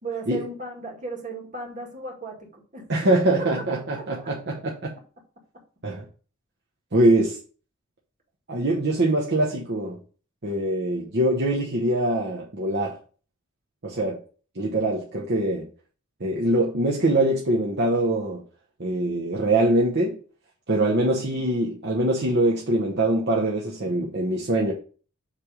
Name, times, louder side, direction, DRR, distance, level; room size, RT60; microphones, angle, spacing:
voice 1, 0.0-2.9 3.1-3.5 3.9-4.3 7.0-7.3 8.9-9.0 21.1-21.4, right 2 dB, 35° right, 2.0 m, -36 dB
voice 2, 2.9-4.9 5.8-6.0 6.9-7.3 8.5-10.0 10.4-12.9 13.8-14.2 14.5-15.7 16.2-18.4 18.8-20.2 20.7-24.7, right 1 dB, 50° right, 1.0 m, -23 dB
7.5 x 3.4 x 4.9 m
head